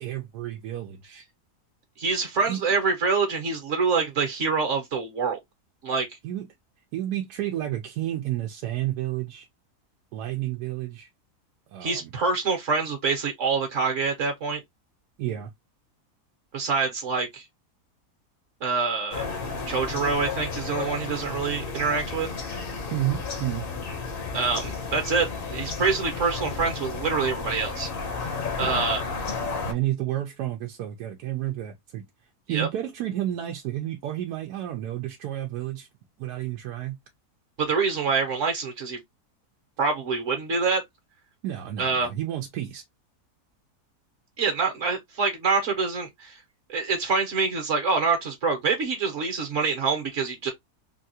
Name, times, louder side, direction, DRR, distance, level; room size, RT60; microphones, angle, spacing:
voice 1, 0.0-1.2 2.4-2.6 6.2-6.4 6.9-9.5 10.1-11.1 11.7-12.1 15.2-15.5 22.9-23.7 28.6-28.8 29.6-32.0 32.5-35.9 36.2-37.0 41.4-42.8, right 13 dB, 90° right, 1.2 m, -31 dB
voice 2, 2.0-5.4 5.8-6.1 11.8-14.6 16.5-17.4 18.6-19.3 19.7-22.3 24.3-27.9 28.6-29.0 32.5-32.7 37.6-39.0 39.8-40.8 41.8-42.1 44.4-46.4 46.7-50.5, right 4 dB, 55° right, 1.1 m, -26 dB
sound 1, 19.1-29.7, left 4 dB, 50° left, 0.7 m, -32 dB
3.4 x 2.3 x 2.6 m
omnidirectional pair, 1.7 m